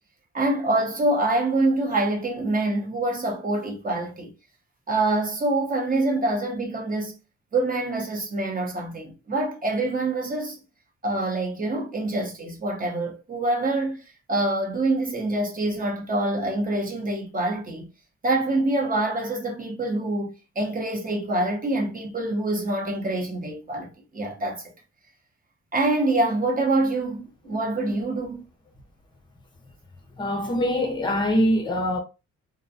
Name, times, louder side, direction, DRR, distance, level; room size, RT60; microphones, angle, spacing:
voice 1, 0.3-4.3 4.9-7.2 7.5-10.6 11.0-14.0 14.3-17.9 18.2-24.6 25.7-28.4, right 2 dB, 30° right, 0.8 m, -25 dB
voice 2, 30.2-32.0, equal, 15° left, 0.6 m, -23 dB
2.5 x 2.2 x 2.5 m
cardioid pair, 130°, 30 cm